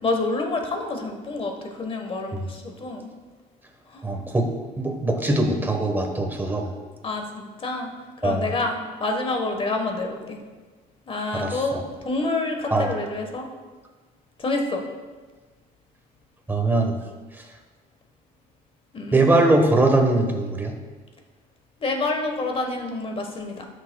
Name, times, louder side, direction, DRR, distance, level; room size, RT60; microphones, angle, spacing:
voice 1, 0.0-1.5 1.8-3.1 3.9-4.0 7.0-7.9 8.2-10.4 11.1-13.5 14.4-14.8 18.9-19.2 21.8-23.7, left 2 dB, 35° left, 3 dB, 1.3 m, -28 dB
voice 2, 4.0-4.5 4.8-6.7 8.2-8.5 11.3-11.8 12.7-13.0 16.5-16.9 19.1-20.7, right 2 dB, 10° right, 3 dB, 1.2 m, -21 dB
12.5 x 6.4 x 2.3 m, 1.4 s
cardioid pair, 110°, 17 cm